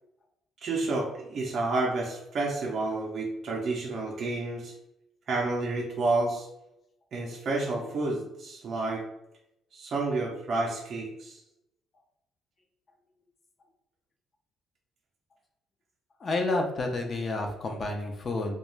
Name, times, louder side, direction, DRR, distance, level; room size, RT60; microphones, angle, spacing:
voice 1, 0.6-4.7 5.3-6.5 7.1-9.0 9.7-11.4, right 2 dB, 45° right, -2 dB, 0.5 m, -30 dB
voice 2, 16.2-18.6, left 2 dB, 35° left, 3 dB, 0.4 m, -30 dB
2.4 x 2.2 x 3.0 m, 0.84 s
cardioid pair, 145°, 0 cm